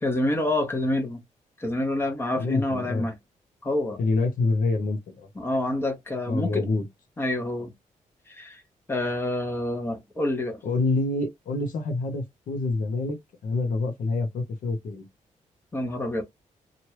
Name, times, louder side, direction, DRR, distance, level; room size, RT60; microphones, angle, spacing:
voice 1, 0.0-1.2 1.6-3.1 3.6-4.0 5.3-6.7 7.2-7.7 8.3-8.6 8.9-10.6 15.7-16.2, left 1 dB, 15° left, 1.0 m, -27 dB
voice 2, 2.4-3.1 4.0-5.3 6.3-6.9 10.6-13.2 13.4-15.0, left 3 dB, 80° left, 0.8 m, -26 dB
2.9 x 2.5 x 3.0 m
wide cardioid pair, 160°, 14 cm